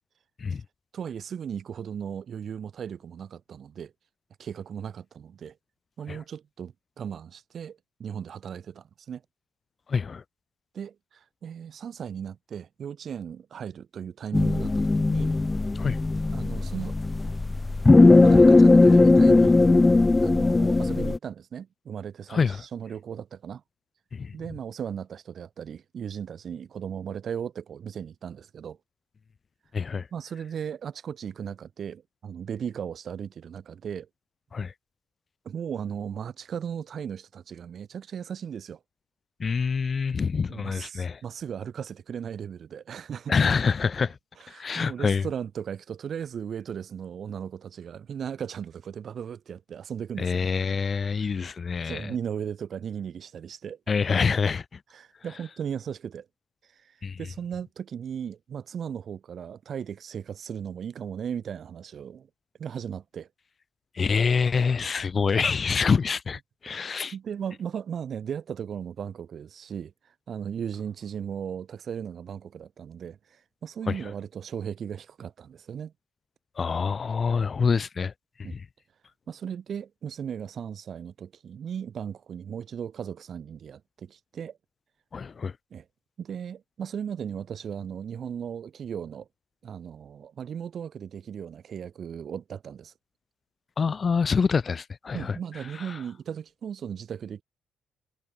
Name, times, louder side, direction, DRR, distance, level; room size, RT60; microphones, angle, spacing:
voice 1, 0.9-3.9 4.4-5.6 6.0-9.2 10.7-15.3 16.3-17.0 18.2-19.5 20.2-23.6 24.3-28.8 30.1-34.1 35.5-38.8 40.5-43.3 44.4-50.4 51.1-51.3 51.8-53.8 54.9-56.3 56.8-62.3 62.6-63.3 66.7-69.9 70.3-75.9 78.4-78.6 79.3-84.6 85.7-85.8 86.2-89.3 89.6-92.9 95.1-97.4, right 8 dB, 55° right, 7.3 m, -36 dB
voice 2, 9.9-10.2 15.7-16.0 22.3-22.6 24.1-24.3 29.7-30.1 34.5-34.7 39.4-41.2 43.3-44.2 44.5-45.2 50.2-52.1 53.9-54.6 57.0-57.2 63.9-67.1 73.9-74.1 76.6-78.1 78.5-78.6 85.1-85.5 93.8-95.4 95.9-96.0, left 5 dB, 40° left, 1.3 m, -26 dB
sound 1, 14.3-21.2, left 2 dB, 20° left, 1.5 m, -18 dB
cardioid pair, 90°, 0 cm